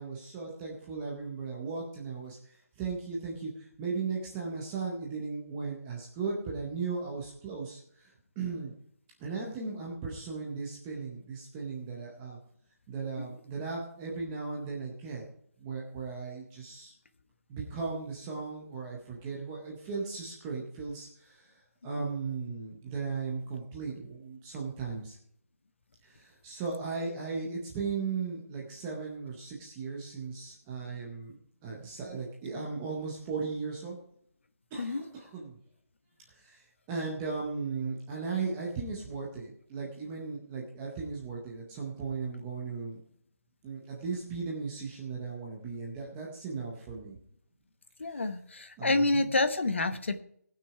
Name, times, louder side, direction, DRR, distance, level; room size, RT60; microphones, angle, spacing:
voice 1, 0.0-2.4 2.8-8.7 9.2-12.4 12.9-15.2 15.6-16.9 17.5-21.5 21.8-25.2 26.0-31.4 31.6-34.0 34.7-35.6 36.3-43.0 43.6-47.2 48.0-48.3 48.8-49.3, right 4 dB, 5° right, -2 dB, 0.6 m, -37 dB
voice 2, 48.0-50.2, left 2 dB, 45° left, 10 dB, 1.0 m, -28 dB
18.0 x 6.1 x 4.7 m, 0.68 s
hypercardioid pair, 180°, 9 cm